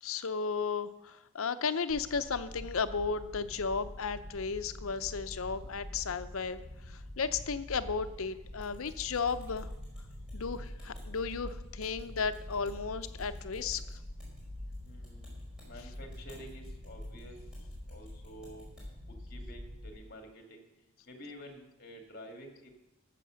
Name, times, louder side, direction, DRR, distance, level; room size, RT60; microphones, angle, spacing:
voice 1, 0.0-9.7 10.3-14.0, left 5 dB, 75° left, 12 dB, 0.7 m, -34 dB
sound 1, 1.9-19.9, left 1 dB, 25° right, 3.1 m, -45 dB
sound 2, 8.6-18.9, equal, 5° right, 4.9 m, -62 dB
voice 2, 10.6-10.9 14.8-15.3 15.6-17.4 17.9-18.7 19.3-20.7 21.1-22.7, equal, 45° left, 4 dB, 2.0 m, -50 dB
13.5 x 7.6 x 6.4 m, 0.99 s
head